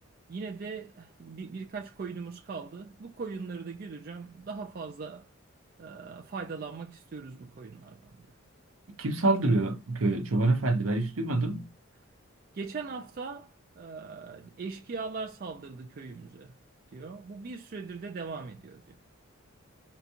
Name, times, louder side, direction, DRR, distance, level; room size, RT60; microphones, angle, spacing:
voice 1, 0.3-5.3 5.8-8.3 12.5-16.5 16.9-19.0, right 4 dB, 40° right, 0.3 m, -40 dB
voice 2, 9.0-11.7, right 2 dB, 75° right, 0.7 m, -26 dB
3.8 x 2.3 x 2.7 m
head